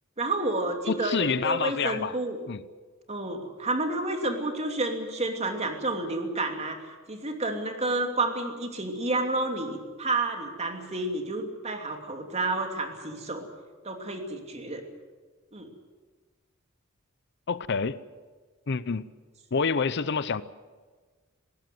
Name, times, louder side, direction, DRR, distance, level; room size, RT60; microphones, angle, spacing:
voice 1, 0.2-2.4 3.1-6.8 7.1-13.5 13.8-14.8 15.5-15.7, right 2 dB, 30° right, 4 dB, 2.9 m, -30 dB
voice 2, 0.9-2.2 2.5-2.6 17.5-18.0 18.7-19.1 19.5-20.4, left 5 dB, 55° left, 16 dB, 0.7 m, -27 dB
19.5 x 18.0 x 9.4 m, 1.4 s
head